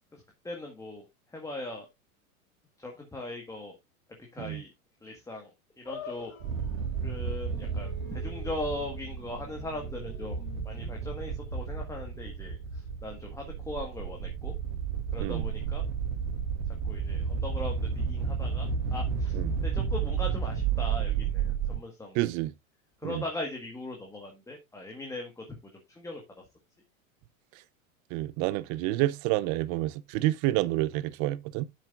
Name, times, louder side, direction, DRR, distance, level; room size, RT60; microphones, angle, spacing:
voice 1, 0.1-1.0 1.3-1.9 2.8-3.8 4.3-4.7 5.0-6.3 7.0-14.5 15.1-15.8 16.8-22.3 23.0-25.6 25.9-26.4, left 2 dB, 5° left, 1.6 m, -39 dB
sound 1, 5.8-12.3, left 5 dB, 40° left, 2.0 m, -48 dB
sound 2, 6.4-21.8, right 6 dB, 65° right, 2.7 m, -32 dB
voice 2, 22.1-22.5 23.0-23.2 28.1-31.6, right 16 dB, 45° right, 0.7 m, -29 dB
10.0 x 7.5 x 2.5 m
hypercardioid pair, 115°, 42 cm